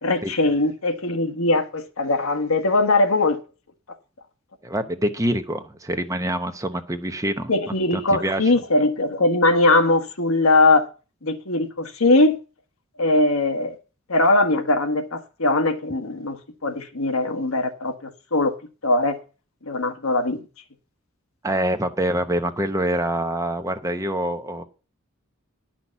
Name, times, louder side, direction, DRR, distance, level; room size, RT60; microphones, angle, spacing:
voice 1, 0.0-3.4 7.5-10.9 11.2-12.4 13.0-13.8 14.1-18.5 18.8-19.2 19.6-20.4, left 2 dB, 85° left, 1.6 m, -20 dB
voice 2, 4.6-7.5 7.9-8.4 21.4-24.6, right 1 dB, 15° right, 0.9 m, -25 dB
11.0 x 5.9 x 7.0 m
head